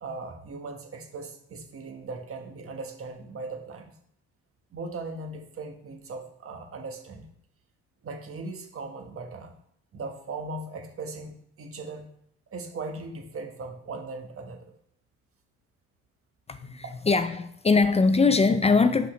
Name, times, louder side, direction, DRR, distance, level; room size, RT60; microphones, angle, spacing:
voice 1, 0.0-3.9 4.7-7.3 8.0-9.5 9.9-12.1 12.5-14.7 16.8-17.0, right 3 dB, 45° right, 1.4 m, -38 dB
voice 2, 16.5-19.1, left 4 dB, 20° left, 0.4 m, -22 dB
6.5 x 5.3 x 3.2 m
cardioid pair, 90°, 30 cm